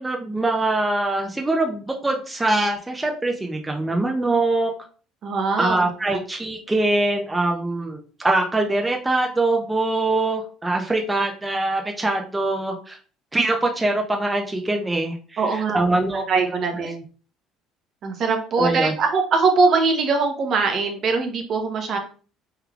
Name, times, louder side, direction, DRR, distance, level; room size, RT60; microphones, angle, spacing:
voice 1, 0.0-4.7 5.6-13.0 13.3-16.5 16.8-16.9 18.6-18.9, right 2 dB, 15° right, 2 dB, 0.6 m, -23 dB
voice 2, 5.2-6.2 15.4-17.0 18.0-22.0, right 4 dB, 55° right, 4 dB, 0.8 m, -22 dB
3.3 x 3.3 x 2.3 m, 0.39 s
supercardioid pair, 80°, 0 cm